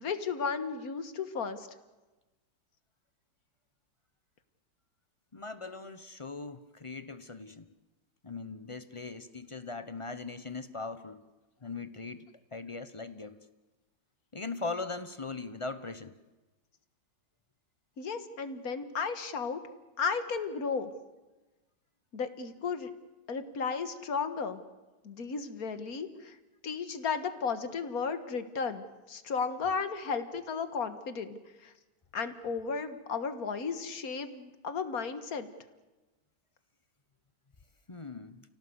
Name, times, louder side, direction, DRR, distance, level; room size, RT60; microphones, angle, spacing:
voice 1, 0.0-1.7 18.0-19.6 20.0-20.9 22.1-22.9 23.3-24.6 25.0-26.4 26.6-31.7 32.1-35.5, left 5 dB, 55° left, 10 dB, 1.9 m, -34 dB
voice 2, 5.3-7.7 8.2-11.2 11.6-12.2 12.5-13.4 14.3-16.1 37.9-38.4, left 3 dB, 35° left, 11 dB, 0.5 m, -40 dB
29.5 x 17.5 x 8.0 m, 1.1 s
omnidirectional pair, 1.9 m